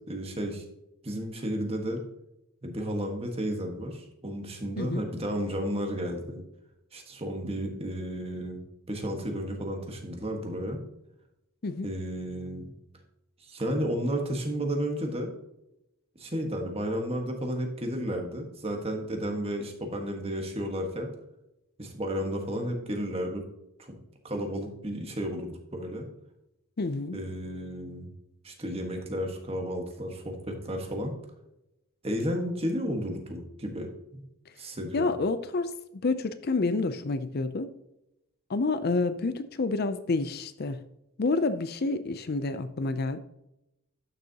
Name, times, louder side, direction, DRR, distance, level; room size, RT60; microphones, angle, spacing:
voice 1, 0.1-0.6 1.0-2.0 2.6-6.4 6.9-8.6 8.9-10.8 11.8-12.7 13.4-15.3 16.2-21.1 21.8-23.4 23.9-24.0 24.2-26.1 27.1-28.1 28.4-31.1 32.0-34.2 34.6-35.1, equal, 25° right, 2 dB, 1.5 m, -32 dB
voice 2, 26.8-27.2 34.9-35.7 36.0-37.7 38.5-40.8 41.2-43.2, left 3 dB, 45° left, 12 dB, 0.5 m, -28 dB
11.5 x 6.6 x 2.9 m, 0.88 s
head